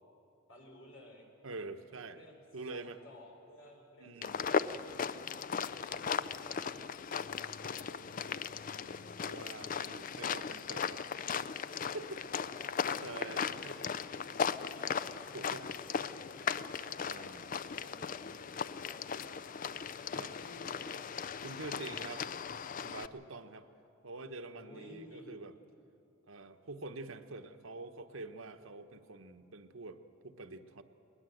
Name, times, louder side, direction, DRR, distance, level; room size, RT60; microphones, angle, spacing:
voice 1, 0.5-1.3 2.1-4.8 5.8-6.9 7.4-8.3 12.5-13.3 13.6-15.3 15.7-18.6 18.9-19.3 19.9-21.1 24.5-25.3, left 1 dB, 75° left, 1 dB, 4.2 m, -55 dB
voice 2, 1.4-2.2 2.5-3.0 4.0-4.5 8.8-11.0 11.9-12.2 13.0-13.7 15.3-15.6 17.0-17.5 20.1-20.3 21.4-22.5 22.8-23.7 24.0-25.5 26.3-30.8, right 3 dB, 85° right, 8 dB, 1.1 m, -46 dB
sound 1, 4.2-23.1, left 6 dB, 40° left, 0.4 m, -37 dB
20.5 x 19.5 x 7.9 m, 2.9 s
head